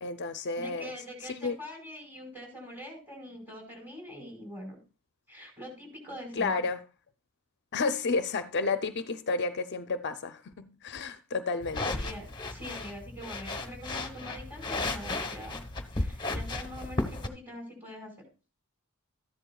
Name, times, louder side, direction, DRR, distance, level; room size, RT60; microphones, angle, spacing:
voice 1, 0.0-0.9 1.2-1.6 6.3-6.8 7.7-11.9, left 4 dB, 50° left, 0.5 m, -31 dB
voice 2, 0.6-4.8 5.3-6.5 11.9-15.6 15.9-18.2, equal, 10° right, 4.7 m, -43 dB
sound 1, 11.6-17.3, left 2 dB, 20° left, 1.1 m, -34 dB
13.5 x 11.0 x 2.3 m
head